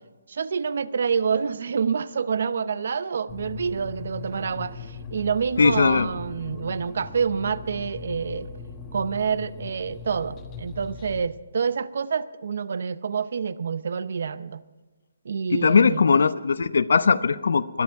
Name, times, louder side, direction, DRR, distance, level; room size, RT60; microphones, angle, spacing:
voice 1, 0.3-8.5 8.9-14.6 15.2-16.0, right 6 dB, 60° right, 16 dB, 0.6 m, -27 dB
sound 1, 3.3-11.2, left 5 dB, 15° left, 1.4 m, -39 dB
voice 2, 5.6-6.1 15.5-17.8, left 5 dB, 70° left, 14 dB, 0.7 m, -19 dB
21.0 x 13.0 x 4.7 m, 1.2 s
hypercardioid pair, 170°, 0 cm